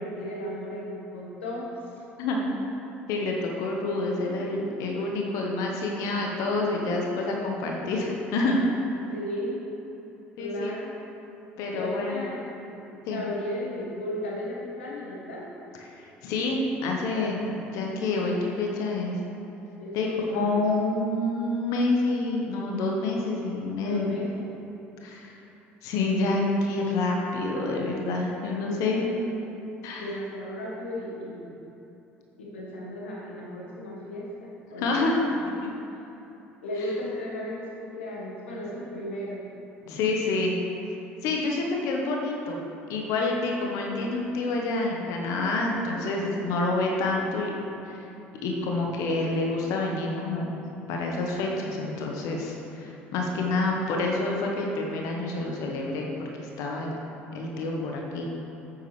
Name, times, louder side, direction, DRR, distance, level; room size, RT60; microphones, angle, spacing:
voice 1, 0.0-1.8 9.1-9.6 10.4-10.9 11.7-12.5 12.9-15.5 19.8-20.6 23.8-24.5 26.1-26.3 28.5-29.1 30.0-31.5 32.4-35.0 35.6-35.7 36.6-39.4, left 1 dB, 85° left, -4 dB, 1.7 m, -35 dB
voice 2, 3.1-8.6 10.4-10.8 11.6-12.2 13.1-13.2 15.8-19.2 19.9-24.2 25.0-25.3 25.8-29.2 29.8-30.1 34.8-35.2 39.8-40.5 41.2-42.6 42.9-47.5 47.9-48.0 48.4-50.6 50.9-56.1 56.4-56.9 57.3-58.3, left 2 dB, 65° left, 0 dB, 1.3 m, -28 dB
9.0 x 8.6 x 3.4 m, 3.0 s
hypercardioid pair, 60°, 6 cm